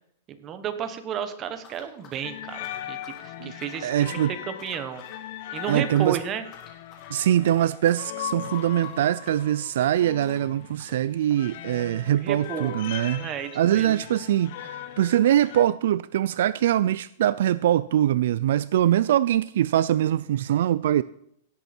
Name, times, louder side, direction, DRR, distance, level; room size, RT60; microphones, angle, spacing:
voice 1, 0.3-4.2 4.4-5.0 5.5-6.4 12.2-12.7 13.2-14.0, right 8 dB, 25° right, 9 dB, 1.2 m, -33 dB
sound 1, 1.6-3.3 3.6-4.2 4.5-5.2 5.5-6.2 6.5-7.2 7.5-8.1 8.4-14.1 14.3-14.4 14.6-14.7 15.4-15.5, left 3 dB, 25° left, 2.8 m, -52 dB
sound 2, 2.2-15.7, left 12 dB, 50° left, 0.9 m, -39 dB
voice 2, 3.8-4.3 5.7-6.2 7.1-13.3 13.5-21.0, right 11 dB, 65° right, 17 dB, 0.3 m, -23 dB
17.0 x 8.1 x 4.4 m, 0.72 s
supercardioid pair, 160°, 0 cm